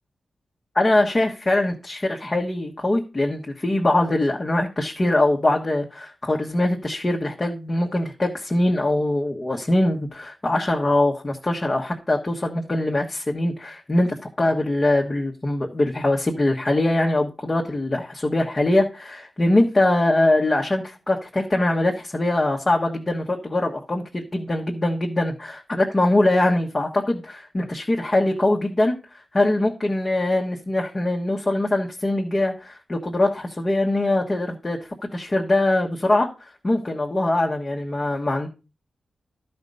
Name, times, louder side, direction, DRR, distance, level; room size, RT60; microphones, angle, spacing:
voice 1, 0.7-29.0 29.3-34.8 35.1-38.5, left 1 dB, 20° left, 0 dB, 1.2 m, -22 dB
12.5 x 4.4 x 5.4 m, 0.32 s
wide cardioid pair, 155°, 0 cm